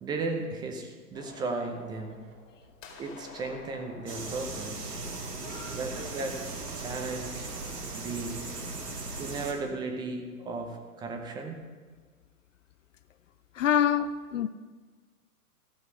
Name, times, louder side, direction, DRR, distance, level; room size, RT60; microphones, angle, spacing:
voice 1, 0.0-2.2 3.0-4.9 5.7-6.4 6.8-7.5 7.9-8.4 9.2-11.6, right 3 dB, 10° right, 4 dB, 0.6 m, -35 dB
sound 1, 1.1-6.9 7.3-8.7, left 4 dB, 25° left, 2.3 m, -51 dB
sound 2, 2.1-10.1, right 4 dB, 40° right, 1.4 m, -54 dB
sound 3, 4.1-9.5, right 3 dB, 90° right, 2.1 m, -38 dB
voice 2, 13.6-14.5, left 9 dB, 55° left, 14 dB, 0.5 m, -25 dB
14.5 x 6.1 x 5.5 m, 1.4 s
figure-of-eight pair, 125°, 46 cm